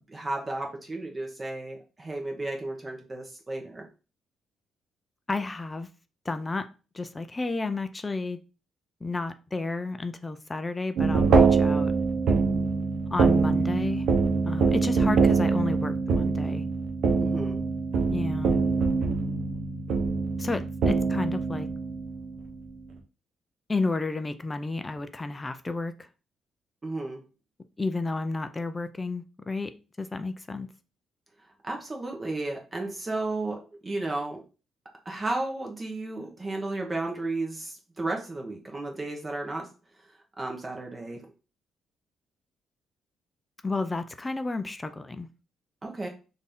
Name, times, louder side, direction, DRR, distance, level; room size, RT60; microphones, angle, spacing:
voice 1, 0.1-3.8 17.2-17.6 26.8-27.2 31.6-34.4 35.0-39.7 40.4-41.3 45.8-46.1, right 2 dB, 25° right, 1.0 m, -33 dB
voice 2, 5.3-5.9 6.3-6.7 6.9-8.4 9.0-11.9 13.1-14.1 14.5-16.6 18.1-18.6 20.4-21.7 23.7-26.1 27.8-30.7 43.6-45.3, left 3 dB, 20° left, 0.4 m, -32 dB
sound 1, 11.0-22.5, right 4 dB, 75° right, 0.8 m, -24 dB
4.1 x 2.6 x 3.5 m
cardioid pair, 90°, 0 cm